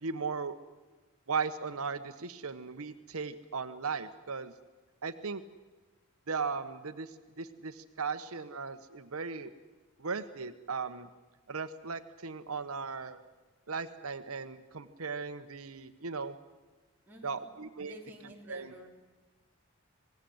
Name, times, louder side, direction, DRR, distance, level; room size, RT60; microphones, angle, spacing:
voice 1, 0.0-0.5 1.3-4.5 5.0-5.4 6.3-9.5 10.0-11.1 11.5-13.2 13.7-16.4 17.2-17.9 18.5-18.9, right 5 dB, 80° right, 10 dB, 1.1 m, -37 dB
voice 2, 17.1-17.4 17.8-18.9, left 1 dB, 10° right, -2 dB, 3.4 m, -50 dB
26.5 x 19.0 x 7.9 m, 1.3 s
head